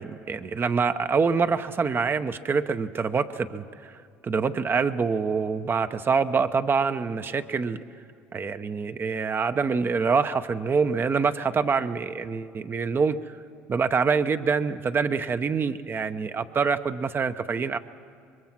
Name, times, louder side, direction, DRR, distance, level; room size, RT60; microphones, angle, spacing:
voice 1, 0.0-3.9 4.2-7.8 8.3-13.2 13.7-17.8, right 5 dB, 35° right, 10 dB, 0.9 m, -25 dB
25.0 x 22.0 x 6.0 m, 2.3 s
supercardioid pair, 75°, 6 cm